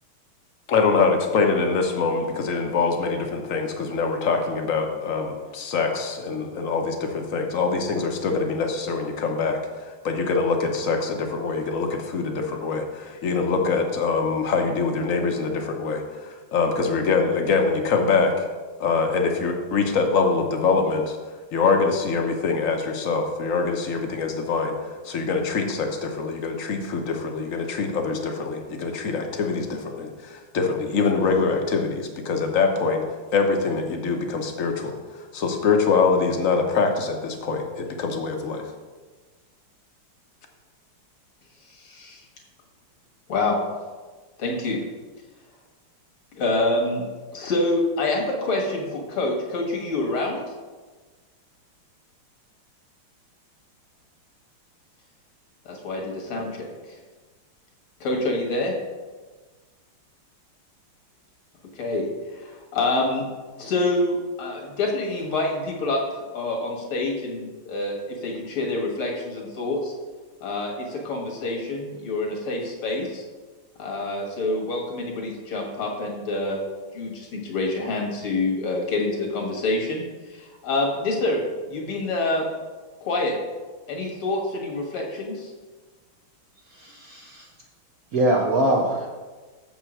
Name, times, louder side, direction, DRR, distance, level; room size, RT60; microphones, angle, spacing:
voice 1, 0.7-18.4 18.8-21.2 21.5-33.0 33.3-38.6, left 4 dB, 50° left, 4 dB, 1.0 m, -24 dB
voice 2, 41.7-42.2 43.3-43.6 44.4-44.8 46.4-47.0 47.3-50.5 55.7-56.7 58.0-58.7 61.8-63.3 63.6-66.0 66.3-69.9 70.4-73.2 73.8-76.6 76.9-80.0 80.3-82.5 83.0-83.4 83.9-85.5, left 2 dB, 75° left, 0 dB, 2.4 m, -26 dB
voice 3, 86.7-87.5 88.1-89.1, right 1 dB, 65° right, 0 dB, 0.9 m, -23 dB
7.2 x 5.6 x 6.2 m, 1.3 s
omnidirectional pair, 2.4 m